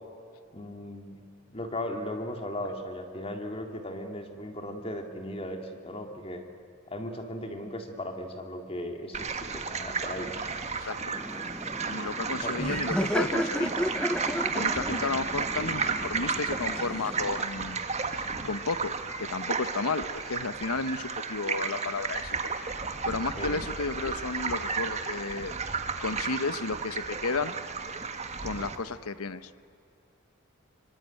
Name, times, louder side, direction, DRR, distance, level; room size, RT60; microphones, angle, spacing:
voice 1, 0.5-1.2 1.5-6.4 6.9-10.5 12.4-12.5 14.9-15.1 23.4-23.5, left 1 dB, 25° left, 4 dB, 2.1 m, -37 dB
sound 1, 9.1-28.8, right 5 dB, 30° right, 1.6 m, -33 dB
voice 2, 10.8-11.1 11.9-13.7 14.5-17.8 18.1-18.9 19.2-22.3 23.0-25.5 26.0-27.5 28.4-29.5, left 4 dB, 85° left, 14 dB, 0.9 m, -33 dB
Laughter, 11.1-17.4, equal, 5° left, 0.6 m, -33 dB
25.0 x 24.0 x 9.1 m, 2.6 s
head